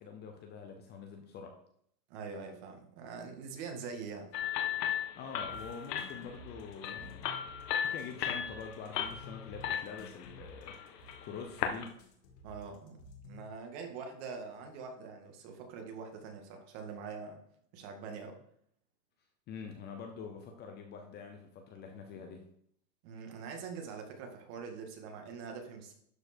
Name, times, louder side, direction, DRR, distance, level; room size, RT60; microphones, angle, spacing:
voice 1, 0.0-1.5 5.1-7.3 7.6-12.0 19.5-22.5, left 5 dB, 20° left, 4 dB, 0.7 m, -46 dB
voice 2, 2.1-4.3 12.4-13.0 13.2-17.4 17.7-18.4 23.0-25.9, right 5 dB, 45° right, 4 dB, 2.0 m, -44 dB
sound 1, 4.3-11.9, left 9 dB, 75° left, 1.6 m, -37 dB
sound 2, 5.5-13.5, left 3 dB, 55° left, 2.2 m, -52 dB
12.0 x 4.6 x 4.4 m, 0.69 s
supercardioid pair, 145°, 49 cm